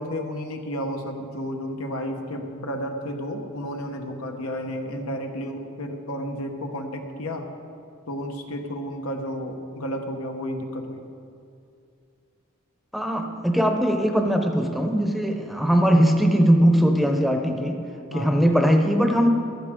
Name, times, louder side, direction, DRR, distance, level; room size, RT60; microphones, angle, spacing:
voice 1, 0.0-7.5 8.1-11.1 18.1-18.4, equal, 90° left, 4 dB, 1.1 m, -32 dB
voice 2, 12.9-17.8 18.1-19.3, equal, ahead, 3 dB, 0.7 m, -20 dB
14.5 x 12.0 x 3.7 m, 2.5 s
head